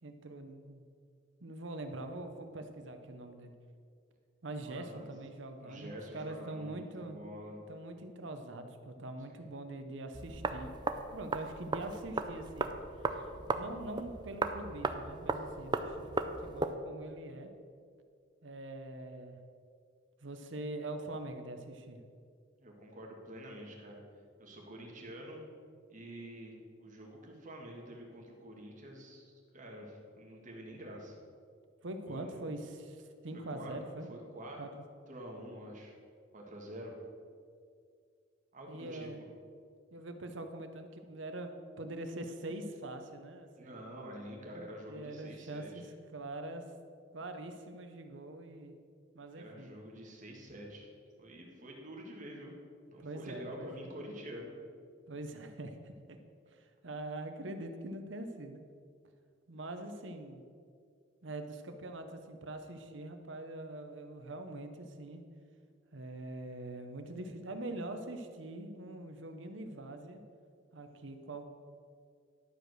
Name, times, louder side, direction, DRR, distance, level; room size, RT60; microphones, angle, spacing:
voice 1, 0.0-0.8 1.4-3.5 4.4-7.2 7.7-10.7 11.1-12.7 13.1-13.2 13.5-17.5 18.4-19.4 20.2-22.0 31.8-34.1 34.6-34.7 38.7-39.2 39.9-41.5 41.8-43.8 44.9-45.9 46.1-46.7 47.1-48.7 49.1-49.7 53.0-53.9 55.1-56.2 56.5-58.6 59.5-60.4 61.2-65.2 65.9-70.2 70.7-71.4, right 2 dB, 70° right, 7 dB, 0.9 m, -43 dB
voice 2, 4.6-5.1 5.6-7.6 9.3-9.4 22.6-24.0 24.4-25.4 25.9-31.2 32.1-32.4 33.5-33.8 34.1-34.6 35.1-35.9 36.3-36.9 38.5-39.1 43.6-45.9 49.4-50.9 51.2-52.5 52.9-54.5, equal, 40° right, -1 dB, 1.8 m, -47 dB
sound 1, 10.1-16.7, right 3 dB, 25° right, 0.5 m, -36 dB
11.5 x 5.1 x 6.3 m, 2.2 s
head